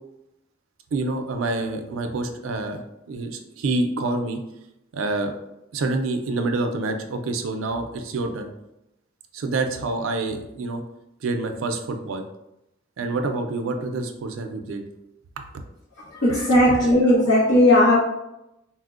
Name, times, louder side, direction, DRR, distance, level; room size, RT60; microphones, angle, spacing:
voice 1, 0.9-2.8 3.1-4.4 4.9-5.3 5.7-8.5 9.3-10.8 11.2-12.2 13.0-14.8, right 2 dB, 75° right, 5 dB, 0.4 m, -27 dB
voice 2, 16.2-18.0, left 1 dB, 75° left, -10 dB, 0.9 m, -16 dB
4.3 x 2.0 x 2.4 m, 0.87 s
head